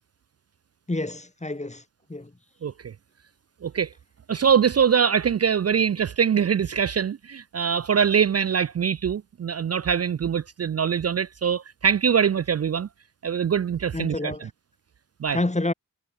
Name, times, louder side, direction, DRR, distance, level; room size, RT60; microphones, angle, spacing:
voice 1, 0.9-1.8 2.1-2.3 13.9-14.5 15.3-15.7, left 2 dB, 20° left, 1.8 m, -28 dB
voice 2, 2.6-2.9 3.6-3.9 4.3-12.9 13.2-14.5 15.2-15.4, right 7 dB, 50° right, 0.4 m, -23 dB
wide cardioid pair, 85°, 33 cm